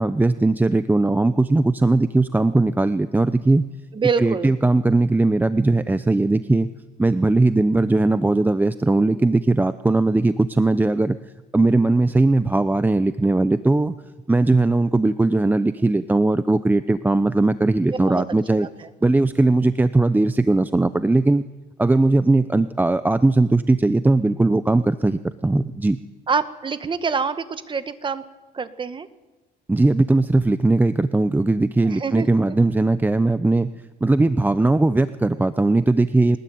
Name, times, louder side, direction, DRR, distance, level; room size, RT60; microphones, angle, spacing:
voice 1, 0.0-3.6 4.2-6.7 7.0-11.2 11.5-13.9 14.3-18.7 19.0-21.4 21.8-26.0 29.7-33.7 34.0-36.4, right 2 dB, 10° right, 13 dB, 0.8 m, -19 dB
voice 2, 3.9-4.5 17.9-18.2 18.6-18.7 26.3-28.2 28.5-29.1 31.9-32.6 36.3-36.4, right 5 dB, 30° right, 12 dB, 1.7 m, -26 dB
23.0 x 20.0 x 9.5 m, 1.1 s
cardioid pair, 110°, 17 cm